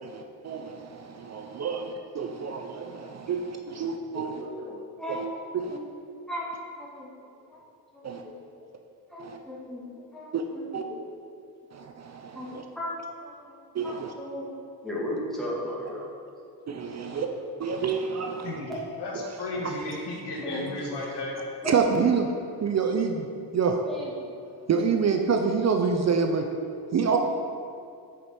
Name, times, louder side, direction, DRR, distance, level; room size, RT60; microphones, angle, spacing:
voice 1, 0.0-4.4 5.1-5.2 5.5-5.8 8.0-8.2 9.2-9.4 10.3-10.4 10.7-10.8 11.7-12.6 13.7-14.1 16.7-17.3 17.6-18.6 19.1-19.3 19.6-19.7 21.6-22.3 22.6-23.3 23.5-23.8 24.7-26.5 26.9-27.2, right 5 dB, 40° right, 4 dB, 0.6 m, -27 dB
voice 2, 4.1-5.2 5.7-5.8 6.3-6.5 6.8-7.1 7.5-7.6 7.9-8.6 9.1-10.3 10.5-10.8 12.3-13.0 13.2-13.6 13.8-14.6 14.8-16.1 17.1-17.2 18.7-18.8 20.4-20.6 21.6-21.8 23.9-24.1, left 1 dB, ahead, -6 dB, 1.8 m, -36 dB
voice 3, 18.4-18.7 19.0-21.4, left 2 dB, 80° left, -2 dB, 1.6 m, -34 dB
7.5 x 5.2 x 4.3 m, 2.5 s
cardioid pair, 110°, 40 cm